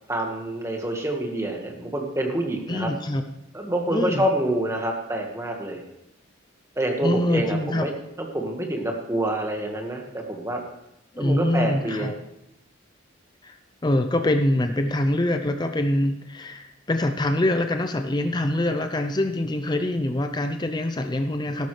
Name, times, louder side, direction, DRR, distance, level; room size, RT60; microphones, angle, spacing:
voice 1, 0.1-2.9 3.5-5.8 6.7-7.9 8.2-10.6 11.2-12.1, right 1 dB, 15° right, 1 dB, 1.6 m, -27 dB
voice 2, 2.7-3.2 3.9-4.2 7.0-7.9 11.1-12.1 13.4-13.5 13.8-21.7, left 1 dB, 20° left, 7 dB, 0.5 m, -24 dB
13.5 x 12.0 x 3.3 m, 0.86 s
head